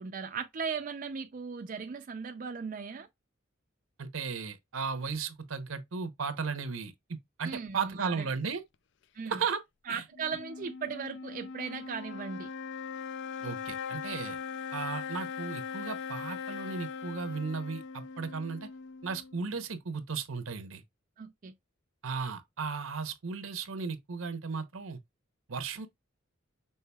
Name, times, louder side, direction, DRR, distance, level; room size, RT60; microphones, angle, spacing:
voice 1, 0.0-3.1 7.4-8.3 9.1-9.4 9.9-12.5 21.2-21.5, right 5 dB, 40° right, 0.4 m, -37 dB
voice 2, 4.0-8.6 9.3-9.6 9.9-10.0 13.4-14.4 14.7-18.7 19.0-20.8 22.0-25.0 25.5-25.9, right 5 dB, 80° right, 0.8 m, -35 dB
sound 1, 10.1-19.6, left 6 dB, 55° left, 0.3 m, -40 dB
5.6 x 3.7 x 2.3 m
head